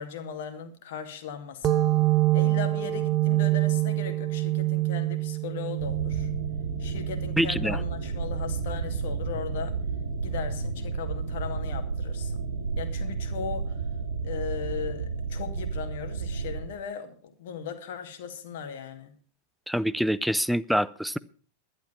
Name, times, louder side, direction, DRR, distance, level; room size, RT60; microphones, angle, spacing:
voice 1, 0.0-1.8 2.3-6.3 6.8-9.8 10.2-12.4 12.8-13.8 14.2-19.1, left 7 dB, 55° left, 2.2 m, -37 dB
sound 1, 1.6-8.9, right 17 dB, 30° right, 0.9 m, -26 dB
sound 2, 5.8-16.6, right 5 dB, 70° right, 2.6 m, -32 dB
voice 2, 7.4-7.8 19.7-21.2, equal, ahead, 0.5 m, -25 dB
11.5 x 11.5 x 5.7 m
figure-of-eight pair, 90°, 0 cm